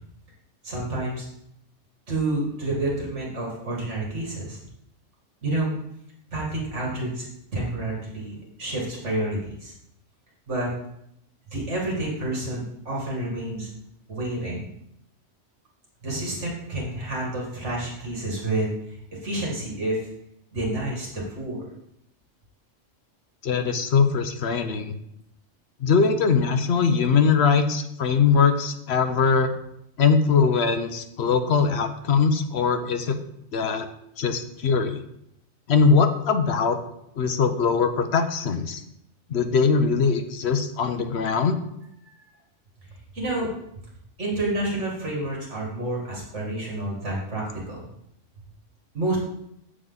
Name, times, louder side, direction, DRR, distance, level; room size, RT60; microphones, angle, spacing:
voice 1, 0.6-1.3 2.1-4.6 5.4-5.7 6.3-7.3 7.5-9.7 10.5-10.7 11.5-13.7 14.1-14.7 16.0-20.1 20.5-21.6 42.0-42.2 43.1-43.5 44.2-47.8 48.9-49.2, right 2 dB, 70° right, -3 dB, 2.3 m, -29 dB
voice 2, 23.4-24.9 25.8-29.5 30.0-33.2 33.5-33.9 34.2-35.0 35.7-36.8 37.2-38.8 39.3-41.6, left 5 dB, 65° left, 8 dB, 1.0 m, -21 dB
9.2 x 6.5 x 3.9 m, 0.78 s
omnidirectional pair, 1.3 m